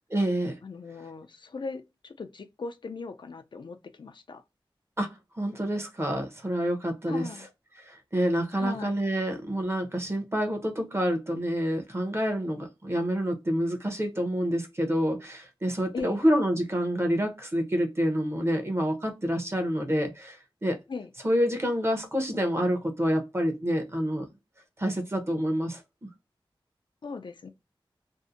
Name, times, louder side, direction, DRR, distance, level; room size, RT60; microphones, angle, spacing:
voice 1, 0.1-0.6 5.0-7.3 7.8-20.8 21.2-24.3 24.8-26.1, equal, 30° right, 0.7 m, -28 dB
voice 2, 0.6-4.4 7.1-7.5 8.6-9.0 15.9-16.2 20.9-21.1 27.0-27.5, left 4 dB, 60° left, 0.4 m, -38 dB
2.6 x 2.1 x 2.5 m
wide cardioid pair, 75°, 9 cm